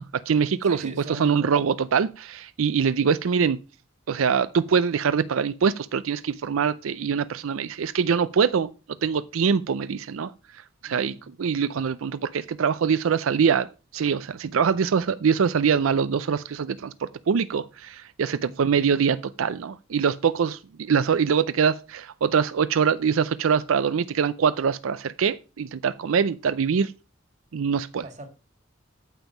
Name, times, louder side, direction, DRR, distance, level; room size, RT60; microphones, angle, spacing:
voice 1, 0.0-0.8 1.2-3.6 4.1-8.7 9.0-10.3 10.8-13.7 13.9-26.9 27.5-28.0, right 6 dB, 90° right, 0.5 m, -23 dB
voice 2, 0.6-1.6 10.8-11.3 18.4-19.0 28.0-28.3, right 1 dB, 35° right, 2.1 m, -42 dB
9.1 x 7.2 x 5.8 m
head